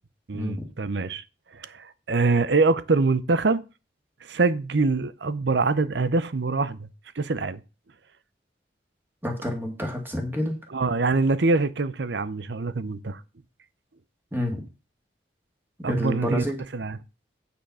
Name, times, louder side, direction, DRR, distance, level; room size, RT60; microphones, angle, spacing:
voice 1, 0.3-1.2 1.5-3.6 4.2-6.9 7.2-7.6 10.7-13.2 15.8-16.4 16.7-17.0, right 3 dB, 65° right, 0.7 m, -24 dB
voice 2, 9.2-10.6 14.3-14.6 15.9-16.6, left 1 dB, 10° right, 2.3 m, -28 dB
9.0 x 5.7 x 5.6 m
head